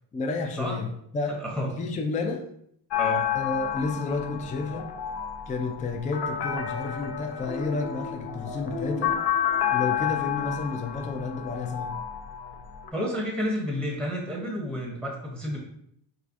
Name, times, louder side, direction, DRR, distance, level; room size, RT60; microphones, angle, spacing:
voice 1, 0.1-1.4 1.7-2.4 3.3-4.9 5.5-9.2 9.7-11.9, left 3 dB, 20° left, 3 dB, 0.3 m, -31 dB
sound 1, 2.9-12.9, left 9 dB, 55° left, 0.6 m, -30 dB
voice 2, 12.9-15.6, equal, ahead, -1 dB, 0.7 m, -30 dB
4.7 x 3.2 x 2.5 m, 0.70 s
cardioid pair, 135°, 48 cm